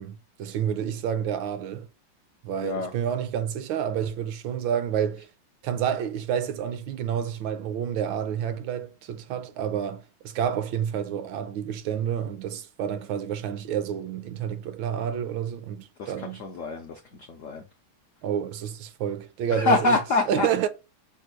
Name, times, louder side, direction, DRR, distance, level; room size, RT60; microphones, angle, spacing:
voice 1, 0.0-1.9 2.4-5.3 5.6-16.4 18.2-20.0 20.3-20.7, right 9 dB, 80° right, 1.3 m, -29 dB
voice 2, 2.6-2.9 16.0-17.6 19.5-20.5, left 3 dB, 80° left, 0.7 m, -26 dB
6.3 x 2.2 x 3.1 m
omnidirectional pair, 2.2 m